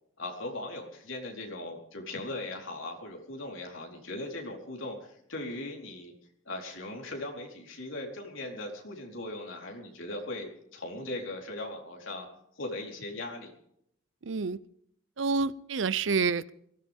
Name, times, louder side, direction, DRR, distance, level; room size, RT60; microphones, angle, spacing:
voice 1, 0.2-6.1 6.5-12.3 12.6-13.5, left 2 dB, 80° left, 0 dB, 4.2 m, -39 dB
voice 2, 14.2-14.6 15.2-16.5, right 4 dB, 70° right, 19 dB, 0.6 m, -28 dB
23.0 x 16.5 x 3.6 m, 0.72 s
head